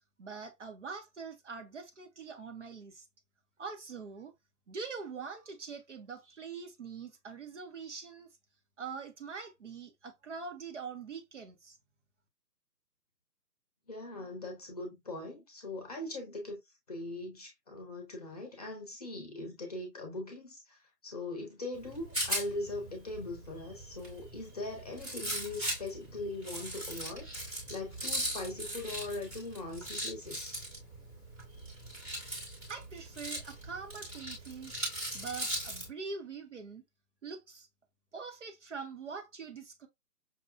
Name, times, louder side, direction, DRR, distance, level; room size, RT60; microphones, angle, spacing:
voice 1, 0.2-3.1 3.6-4.3 4.7-8.3 8.8-11.8 32.7-34.8 35.1-36.8 37.2-37.7 38.1-39.9, right 5 dB, 50° right, 0.7 m, -43 dB
voice 2, 13.9-16.6 16.9-30.6, left 2 dB, 25° left, 0.8 m, -41 dB
Rattle, 21.7-35.9, equal, 10° right, 0.9 m, -39 dB
5.6 x 2.1 x 2.3 m
figure-of-eight pair, 140°, 48 cm